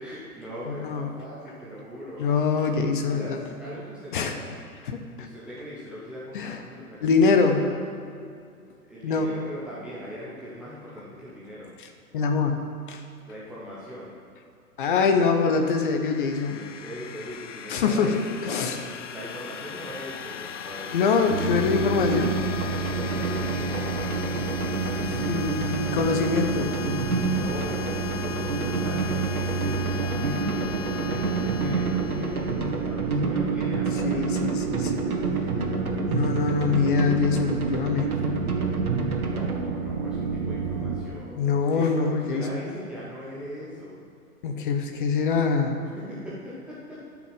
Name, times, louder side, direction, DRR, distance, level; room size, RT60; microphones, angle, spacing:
voice 1, 0.0-2.3 3.1-4.5 5.2-7.7 8.9-11.7 13.3-14.1 16.6-21.1 22.9-24.4 27.2-34.5 39.3-42.0 42.3-44.0 45.9-47.0, equal, ahead, -10 dB, 0.6 m, -40 dB
voice 2, 0.7-1.1 2.2-3.5 4.1-4.3 4.8-5.3 6.3-6.6 7.0-7.7 9.0-9.3 11.8-11.9 12.1-12.6 12.9-13.0 14.8-16.6 17.7-18.1 18.4-18.8 20.9-22.4 25.0-26.7 34.0-35.1 36.1-38.2 41.4-42.6 44.4-45.8, left 5 dB, 35° left, 5 dB, 1.0 m, -24 dB
sound 1, 15.4-33.0, left 8 dB, 50° left, 0.6 m, -37 dB
sound 2, 21.3-41.1, right 5 dB, 30° right, 0.9 m, -30 dB
sound 3, 21.9-39.6, right 3 dB, 65° right, 1.8 m, -30 dB
12.0 x 6.0 x 7.5 m, 2.4 s
figure-of-eight pair, 120°, 46 cm